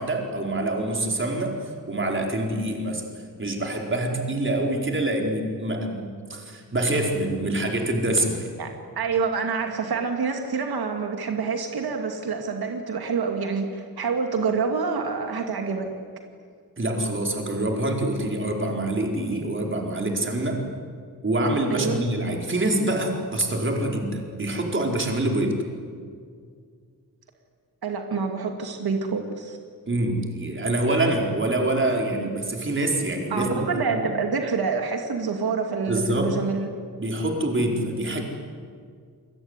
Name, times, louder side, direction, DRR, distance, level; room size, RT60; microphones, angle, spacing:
voice 1, 0.0-1.6 1.9-3.0 3.4-8.5 16.8-20.6 21.2-25.6 29.9-34.1 35.9-36.3 37.0-38.2, right 1 dB, 35° right, 1 dB, 4.5 m, -25 dB
voice 2, 8.6-15.9 21.7-22.0 27.8-29.6 32.2-32.3 33.3-36.7, right 5 dB, 85° right, 4 dB, 2.5 m, -27 dB
28.0 x 21.5 x 9.8 m, 2.1 s
wide cardioid pair, 130°, 36 cm